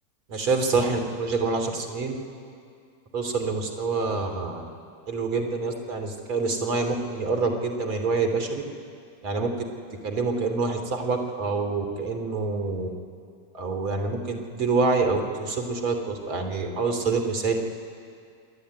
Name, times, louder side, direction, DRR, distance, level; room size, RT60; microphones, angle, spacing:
voice 1, 0.3-2.2 3.1-4.6 5.1-8.6 9.2-9.5 10.0-12.9 13.5-17.6, right 4 dB, 45° right, 5 dB, 3.0 m, -26 dB
27.0 x 10.5 x 9.9 m, 2.3 s
figure-of-eight pair, 90°, 0 cm